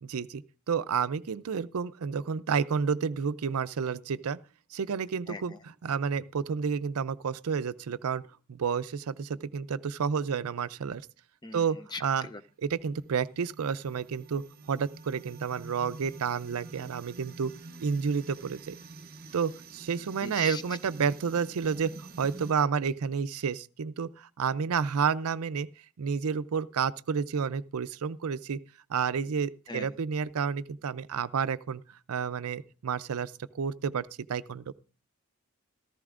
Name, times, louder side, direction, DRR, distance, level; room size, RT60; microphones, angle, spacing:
voice 1, 0.0-4.4 4.7-8.2 8.5-11.0 11.5-12.3 12.6-14.4 14.7-17.5 17.8-18.8 19.3-25.7 26.0-28.6 28.9-31.8 32.1-34.7, right 6 dB, 75° right, 0.5 m, -30 dB
voice 2, 5.3-5.6 11.4-11.6 11.9-12.4 20.2-20.6 29.7-29.9, left 3 dB, 20° left, 0.5 m, -40 dB
sound 1, 12.7-22.5, right 3 dB, 45° right, 0.7 m, -48 dB
14.5 x 14.0 x 2.5 m
head